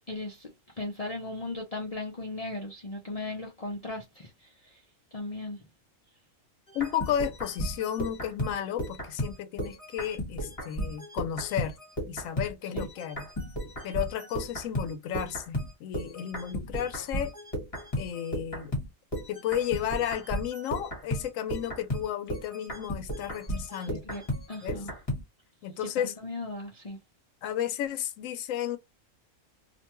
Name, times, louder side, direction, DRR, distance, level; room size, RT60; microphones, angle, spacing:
voice 1, 0.1-4.8 5.1-5.6 12.7-12.9 23.7-24.9 25.8-27.0, left 2 dB, 50° left, 0.4 m, -38 dB
voice 2, 6.7-11.8 12.1-13.3 13.8-17.3 18.0-18.7 19.3-24.0 24.6-24.8 25.6-26.1 27.4-28.8, left 10 dB, 75° left, 0.9 m, -33 dB
sound 1, 6.7-12.5 12.8-25.2, equal, 25° left, 1.2 m, -34 dB
2.5 x 2.2 x 2.9 m
omnidirectional pair, 1.4 m